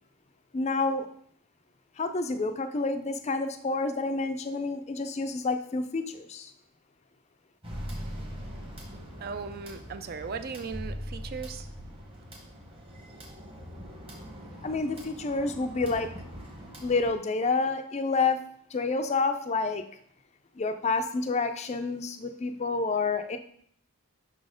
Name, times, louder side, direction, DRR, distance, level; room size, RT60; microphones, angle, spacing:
voice 1, 0.5-1.1 2.0-6.5 14.6-16.1 16.8-18.4 18.7-19.8 20.6-23.4, left 3 dB, 30° left, 9 dB, 0.4 m, -29 dB
sound 1, 7.6-17.1, equal, 25° right, 1.1 m, -45 dB
sound 2, 7.7-9.1 10.7-12.1, equal, 60° right, 1.8 m, -39 dB
voice 2, 9.2-11.7, right 5 dB, 45° right, 11 dB, 0.4 m, -37 dB
5.7 x 4.1 x 5.0 m, 0.63 s
head